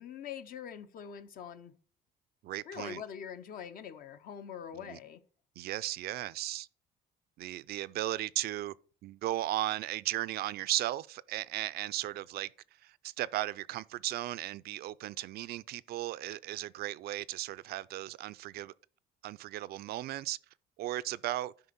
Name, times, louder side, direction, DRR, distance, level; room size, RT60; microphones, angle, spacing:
voice 1, 0.0-1.7 2.6-5.2, left 8 dB, 60° left, 0.8 m, -44 dB
voice 2, 2.4-3.0 4.7-5.0 5.6-6.7 7.4-8.7 9.0-12.5 12.8-18.7 19.2-20.4 20.8-21.5, right 15 dB, 65° right, 0.4 m, -36 dB
11.5 x 5.1 x 4.1 m
cardioid pair, 110°, 17 cm